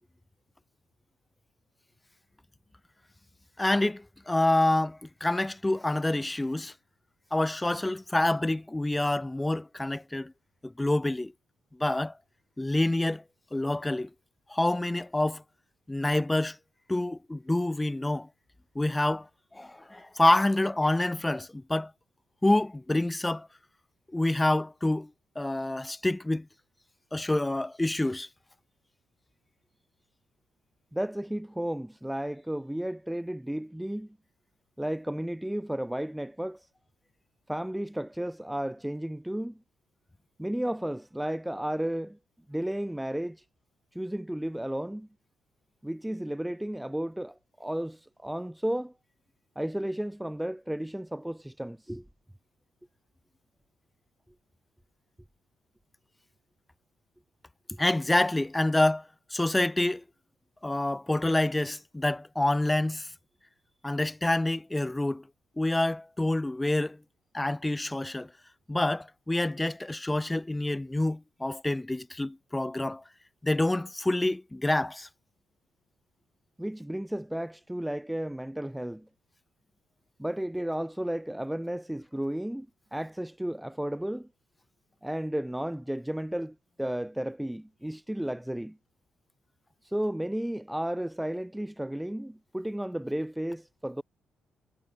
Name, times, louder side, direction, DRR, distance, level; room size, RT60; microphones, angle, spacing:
voice 1, 3.6-6.7 7.3-10.3 10.6-11.3 11.8-12.1 12.6-13.2 13.5-14.1 14.5-15.4 15.9-16.6 16.9-18.3 18.7-19.3 19.5-21.9 22.4-23.5 24.1-25.1 25.3-26.5 27.1-28.3 57.8-60.0 60.6-63.1 63.8-65.2 65.6-67.0 67.3-68.3 68.7-73.0 73.4-75.1, left 1 dB, 10° left, 6.6 m, -27 dB
voice 2, 30.9-34.1 34.8-36.7 37.5-39.6 40.4-42.2 42.5-43.4 43.9-45.1 45.8-48.9 49.6-52.1 57.7-57.8 76.6-79.1 80.2-84.3 85.0-88.8 89.8-94.0, right 1 dB, 5° right, 4.3 m, -33 dB
cardioid pair, 90°, 0 cm